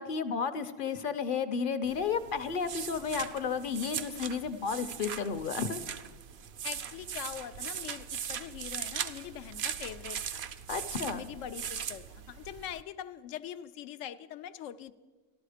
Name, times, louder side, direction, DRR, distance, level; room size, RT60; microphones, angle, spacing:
voice 1, 0.0-5.8 10.7-11.2, left 6 dB, 55° left, 11 dB, 0.7 m, -32 dB
sound 1, 1.8-12.8, right 8 dB, 65° right, 0.8 m, -40 dB
voice 2, 6.6-10.4 11.1-14.9, left 10 dB, 90° left, 12 dB, 0.9 m, -43 dB
13.5 x 13.0 x 4.9 m, 1.3 s
omnidirectional pair, 1.3 m